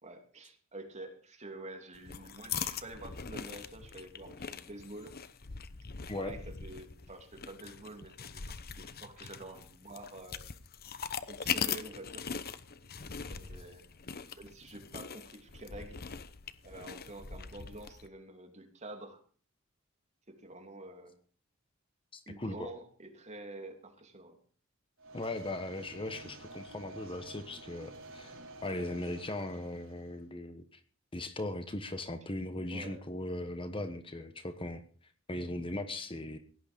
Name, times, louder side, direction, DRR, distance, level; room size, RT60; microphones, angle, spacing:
voice 1, 0.0-5.1 6.1-10.5 11.3-12.3 13.3-13.8 14.3-16.0 16.6-19.2 20.3-21.1 22.3-24.4 32.7-33.0, right 2 dB, 35° right, 4 dB, 3.1 m, -48 dB
sound 1, 1.9-18.1, left 6 dB, 45° left, 1.0 m, -41 dB
voice 2, 22.1-22.7 25.1-28.3 28.6-30.8 31.1-34.8 35.3-36.4, left 1 dB, 25° left, 9 dB, 1.2 m, -38 dB
sound 2, 25.0-30.2, right 2 dB, 65° right, 4.5 m, -50 dB
17.5 x 11.5 x 5.3 m, 0.43 s
head